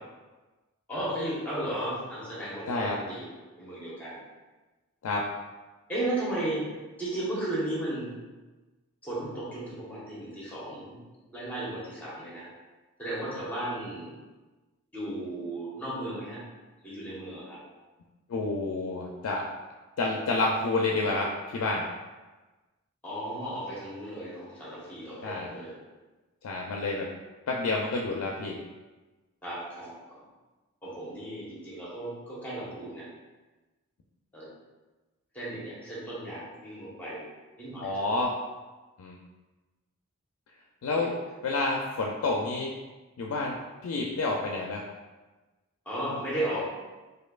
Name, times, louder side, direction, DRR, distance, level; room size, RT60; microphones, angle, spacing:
voice 1, 0.9-3.3 3.6-4.2 5.9-8.2 9.0-11.0 11.3-12.5 13.0-14.2 14.9-16.4 16.8-17.6 23.0-25.8 29.4-30.2 30.8-33.1 34.3-34.5 35.3-37.3 37.6-38.3 41.0-41.2 45.8-46.6, right 1 dB, 5° left, -8 dB, 1.0 m, -35 dB
voice 2, 18.3-19.5 20.0-21.9 25.2-25.5 26.4-27.1 27.5-28.6 37.8-38.4 39.0-39.2 40.8-41.1 41.4-42.7 43.2-43.6 43.8-44.9, left 3 dB, 80° left, -1 dB, 0.4 m, -29 dB
4.3 x 2.6 x 2.4 m, 1.2 s
head